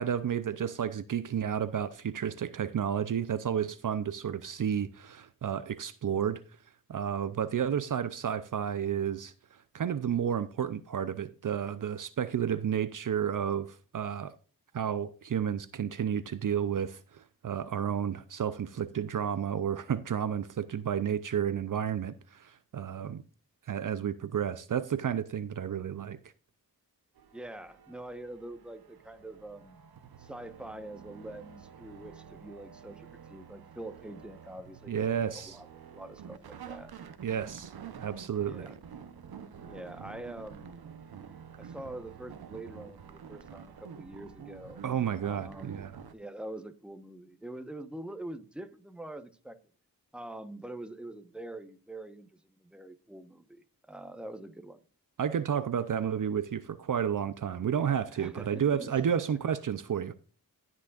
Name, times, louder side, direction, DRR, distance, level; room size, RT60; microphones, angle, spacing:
voice 1, 0.0-6.4 6.9-9.3 9.7-14.3 14.7-23.2 23.7-26.2 34.9-35.6 37.2-38.7 44.8-45.9 55.2-60.1, right 8 dB, 60° right, 0.6 m, -31 dB
sound 1, 27.2-46.1, right 7 dB, 90° right, 0.9 m, -49 dB
voice 2, 27.3-29.8 30.2-36.9 38.5-38.8 39.7-40.7 41.6-44.8 45.2-45.8 46.1-49.6 50.1-54.8 58.1-59.2, right 1 dB, 5° right, 1.0 m, -45 dB
17.5 x 6.1 x 2.5 m
wide cardioid pair, 70°, 36 cm